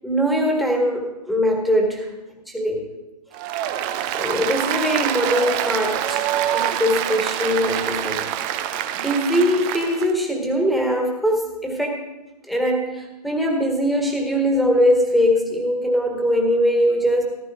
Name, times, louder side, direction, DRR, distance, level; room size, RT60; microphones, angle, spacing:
voice 1, 0.0-2.1 2.5-2.9 4.1-8.3 8.9-12.0 12.5-17.2, equal, ahead, 1 dB, 1.8 m, -21 dB
Applause, 3.3-10.1, right 11 dB, 30° right, 0.8 m, -25 dB
14.5 x 13.5 x 3.7 m, 1.0 s
figure-of-eight pair, 120°, 21 cm